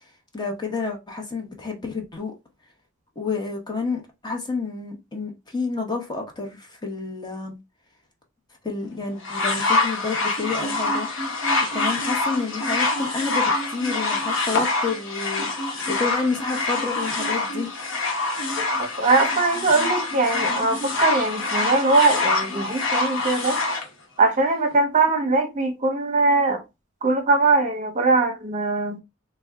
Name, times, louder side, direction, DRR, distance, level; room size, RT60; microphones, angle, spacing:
voice 1, 0.3-2.3 3.2-7.5 8.6-11.1 11.7-17.7, left 4 dB, 20° left, 0.8 m, -29 dB
sound 1, 9.2-23.8 24.7-24.8, left 3 dB, 70° left, 1.0 m, -25 dB
voice 2, 18.6-23.6 24.2-26.6 27.0-29.0, right 3 dB, 40° right, 0.8 m, -21 dB
3.3 x 2.2 x 3.5 m
head